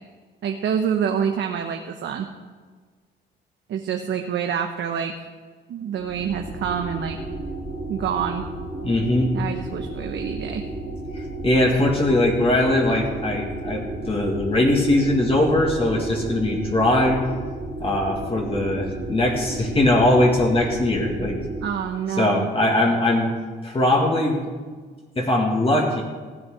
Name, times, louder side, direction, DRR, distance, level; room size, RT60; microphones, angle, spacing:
voice 1, 0.4-2.3 3.7-5.1 5.7-7.2 7.9-8.4 9.3-10.6 21.6-22.5, right 8 dB, 70° right, 4 dB, 1.0 m, -26 dB
sound 1, 5.8-21.7, right 2 dB, 45° right, 3.0 m, -33 dB
voice 2, 8.8-9.3 11.1-17.2 17.8-21.4 22.2-23.3 23.6-24.4 25.2-26.0, left 1 dB, 30° left, 0 dB, 2.1 m, -20 dB
15.5 x 8.8 x 4.9 m, 1.5 s
cardioid pair, 90°, 20 cm